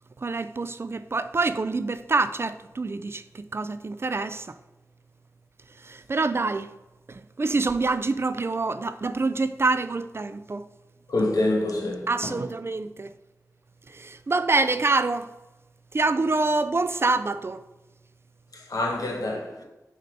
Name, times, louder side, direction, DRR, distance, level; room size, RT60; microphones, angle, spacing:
voice 1, 0.2-4.6 5.8-6.7 7.1-10.7 12.1-13.1 13.9-15.3 15.9-17.6, right 3 dB, 40° right, 0.3 m, -26 dB
voice 2, 11.1-12.4 18.5-19.6, left 2 dB, 80° left, 1.2 m, -26 dB
6.4 x 2.9 x 5.2 m
wide cardioid pair, 60°, 6 cm